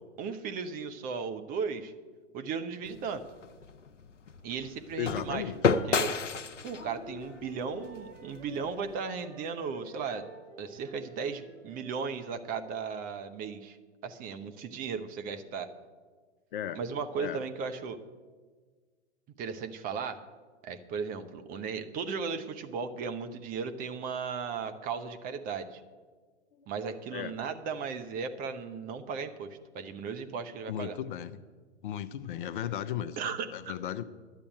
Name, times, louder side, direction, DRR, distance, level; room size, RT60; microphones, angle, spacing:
voice 1, 0.2-1.9 2.3-3.2 4.4-5.5 5.9-6.1 6.6-10.3 10.6-13.8 14.0-15.7 16.7-18.0 19.4-20.2 20.6-25.8 26.7-31.0 33.2-33.8, right 5 dB, 25° right, 8 dB, 0.8 m, -36 dB
sound 1, 2.8-9.0, left 5 dB, 85° left, 0.8 m, -33 dB
voice 2, 5.0-5.6 16.5-16.8 17.2-17.4 26.6-26.7 27.1-27.3 30.7-31.4 31.8-33.2 33.5-34.0, left 10 dB, 45° left, 13 dB, 0.7 m, -35 dB
Wind instrument woodwind instrument, 6.5-12.0, right 3 dB, 65° right, 3.1 m, -52 dB
11.0 x 8.4 x 9.1 m, 1.5 s
figure-of-eight pair, 115°, 36 cm